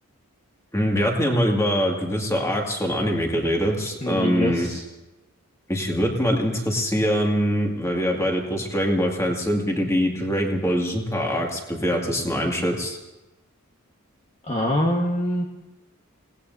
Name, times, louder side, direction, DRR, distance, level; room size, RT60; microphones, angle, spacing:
voice 1, 0.7-4.7 5.7-13.0, equal, 15° left, 0 dB, 2.3 m, -23 dB
voice 2, 4.0-4.8 14.5-15.4, equal, 30° left, -1 dB, 1.5 m, -24 dB
28.0 x 18.5 x 2.8 m, 1.0 s
head